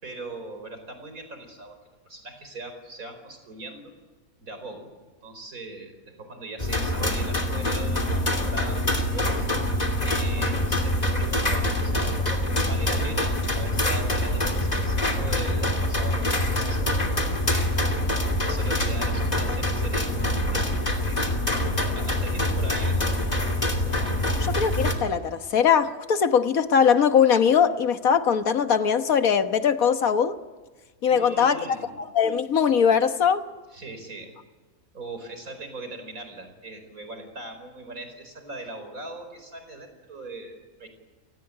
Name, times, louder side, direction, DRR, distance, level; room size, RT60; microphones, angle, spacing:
voice 1, 0.0-1.8 2.0-3.9 4.4-4.9 5.2-9.5 10.0-17.7 18.4-21.2 21.9-23.3 31.0-31.9 33.7-34.3 34.9-40.9, right 2 dB, 75° right, 8 dB, 5.1 m, -40 dB
sound 1, 6.6-24.9, left 1 dB, 30° left, 3.0 m, -25 dB
voice 2, 24.4-30.4 31.0-31.6 32.0-33.4, left 7 dB, 80° left, 9 dB, 1.7 m, -21 dB
30.0 x 19.0 x 9.8 m, 1.3 s
omnidirectional pair, 1.5 m